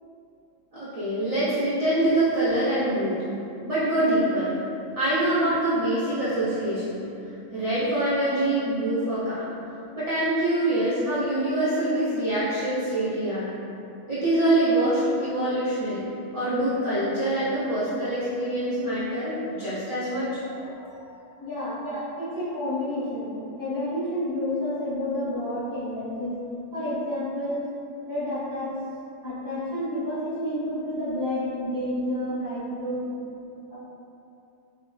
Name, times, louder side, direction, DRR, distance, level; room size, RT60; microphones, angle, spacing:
voice 1, 0.7-3.3 3.6-4.6 5.0-7.1 7.5-9.6 10.0-13.5 14.1-20.4 21.8-22.0, right 1 dB, 40° right, -14 dB, 0.6 m, -25 dB
voice 2, 20.4-21.8 22.2-23.3 23.6-26.4 26.7-27.6 28.1-28.7 29.2-33.1 33.7-33.8, left 1 dB, 20° left, -13 dB, 0.8 m, -30 dB
2.7 x 2.4 x 3.1 m, 2.7 s
omnidirectional pair, 1.4 m